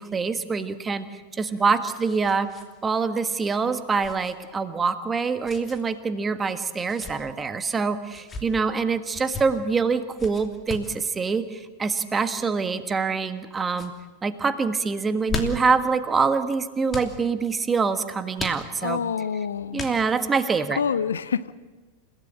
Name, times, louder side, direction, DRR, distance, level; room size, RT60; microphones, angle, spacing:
voice 1, 0.0-2.5 2.8-13.9 14.2-19.0 19.7-20.8, right 5 dB, 15° right, 11 dB, 1.4 m, -25 dB
sound 1, 1.5-2.7 3.0-3.1 4.0-4.3 5.4-5.8 6.7-7.2 8.0-8.5 9.1-9.4 10.2-10.9 12.1-12.4 13.1-13.4 13.7-13.9 15.0-15.8 16.9-17.1 18.4-19.0 19.7-20.3, left 4 dB, 20° left, 2.7 m, -36 dB
voice 2, 18.8-19.8 20.8-21.5, left 7 dB, 70° left, 16 dB, 0.7 m, -27 dB
29.5 x 16.5 x 7.5 m, 1.3 s
figure-of-eight pair, 90°, 0 cm